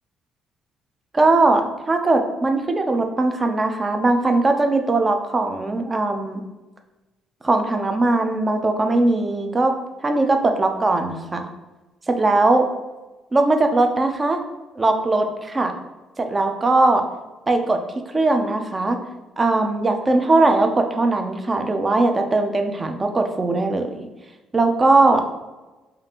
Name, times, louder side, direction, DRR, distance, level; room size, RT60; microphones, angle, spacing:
voice 1, 1.1-6.4 7.4-9.7 10.0-11.5 12.1-12.6 13.3-14.4 14.8-15.7 16.2-17.0 17.5-17.8 18.1-19.0 19.4-24.0 24.5-25.2, right 2 dB, 20° right, 5 dB, 0.4 m, -19 dB
5.0 x 2.4 x 2.8 m, 1.1 s
cardioid pair, 155°, 0 cm